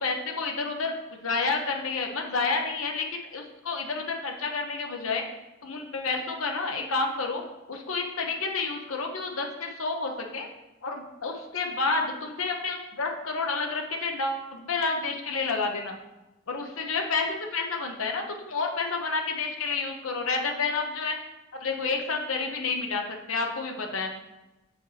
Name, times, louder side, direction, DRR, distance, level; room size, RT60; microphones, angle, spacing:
voice 1, 0.0-5.2 5.6-7.4 7.7-10.5 10.8-16.0 16.5-21.2 21.6-24.1, left 4 dB, 80° left, 3 dB, 0.8 m, -30 dB
8.3 x 4.2 x 3.2 m, 1.0 s
head